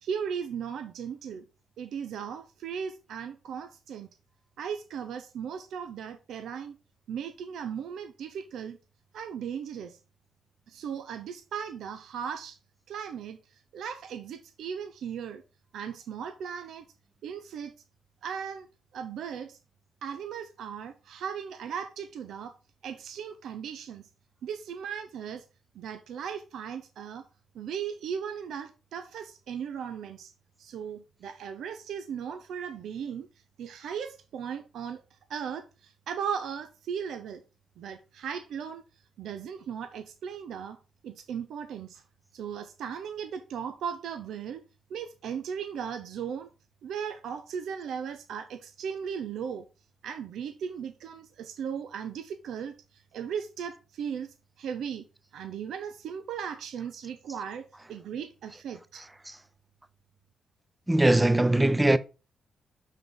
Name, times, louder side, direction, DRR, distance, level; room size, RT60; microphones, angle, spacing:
voice 1, 0.0-1.4 1.8-4.1 4.6-6.8 7.1-8.8 9.1-10.0 10.7-12.6 12.9-13.4 13.7-15.4 15.7-16.9 17.2-17.7 18.2-18.7 18.9-19.6 20.0-22.6 22.8-24.0 24.4-25.4 25.7-27.2 27.5-30.3 30.6-33.3 33.6-35.0 35.3-37.4 37.8-38.8 39.2-40.8 41.0-42.0 42.3-44.6 44.9-46.5 46.8-49.6 50.0-55.0 55.3-59.1, right 7 dB, 80° right, 0.9 m, -37 dB
voice 2, 60.9-62.0, right 1 dB, 15° right, 0.8 m, -21 dB
5.9 x 5.6 x 7.0 m
cardioid pair, 65°, 0 cm